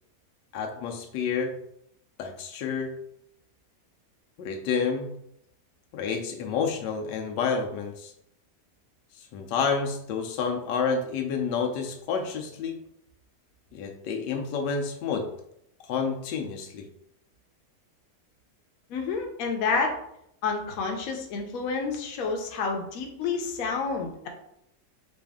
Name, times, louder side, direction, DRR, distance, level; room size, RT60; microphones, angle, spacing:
voice 1, 0.5-1.6 2.2-3.0 4.4-5.1 5.9-8.1 9.2-12.8 13.7-15.3 15.8-16.9, left 5 dB, 90° left, 4 dB, 1.2 m, -29 dB
voice 2, 18.9-20.0 20.4-24.3, left 4 dB, 65° left, 3 dB, 1.0 m, -29 dB
4.2 x 2.5 x 3.4 m, 0.76 s
omnidirectional pair, 1.8 m